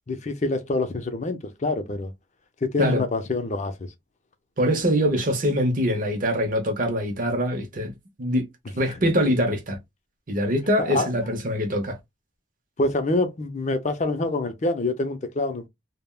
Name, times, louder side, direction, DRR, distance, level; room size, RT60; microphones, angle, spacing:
voice 1, 0.1-2.1 2.6-3.9 8.9-9.0 10.8-11.1 12.8-15.7, left 2 dB, 35° left, 0.5 m, -26 dB
voice 2, 4.6-7.9 8.2-8.5 8.7-9.8 10.3-12.0, equal, 40° right, 0.7 m, -23 dB
3.4 x 2.1 x 2.2 m
head